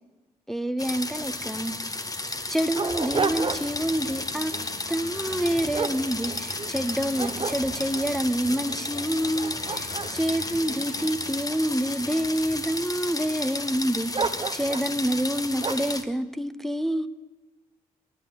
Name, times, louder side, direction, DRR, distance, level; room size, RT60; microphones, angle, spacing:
voice 1, 0.5-1.8 2.5-4.6 4.9-14.1 14.5-17.1, equal, ahead, 0.6 m, -27 dB
sound 1, 0.8-16.0, left 2 dB, 20° left, 1.1 m, -33 dB
Dog, 1.2-1.3 1.6-1.7 2.3-3.9 4.3-4.6 5.2-6.7 7.1-8.1 8.7-8.8 9.2-11.6 12.2-12.8 14.1-14.9 15.6-16.0, right 4 dB, 30° right, 0.8 m, -32 dB
sound 2, 3.3-11.7, left 2 dB, 65° left, 2.5 m, -44 dB
9.0 x 8.6 x 7.4 m
hypercardioid pair, 40°, 17 cm